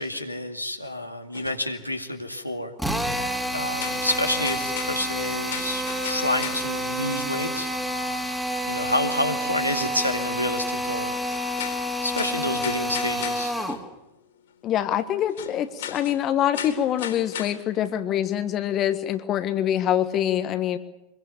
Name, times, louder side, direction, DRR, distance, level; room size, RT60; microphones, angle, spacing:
voice 1, 0.0-2.7 3.5-7.7 8.7-11.1 12.0-13.5, left 1 dB, 90° left, 4 dB, 2.3 m, -29 dB
sound 1, 0.8-0.9 1.3-2.5 3.0-3.2 3.6-7.2 7.5-7.6 8.2-8.3 8.5-8.6 9.2-9.3 9.7-9.8 10.5-10.6 11.1-14.1 14.4-14.5 15.2-18.0, left 9 dB, 60° left, 3.8 m, -37 dB
Drill, 2.8-13.8, equal, 5° right, 2.8 m, -29 dB
voice 2, 14.6-20.8, left 10 dB, 30° left, 10 dB, 1.5 m, -25 dB
26.0 x 22.5 x 7.0 m, 0.95 s
figure-of-eight pair, 90°, 0 cm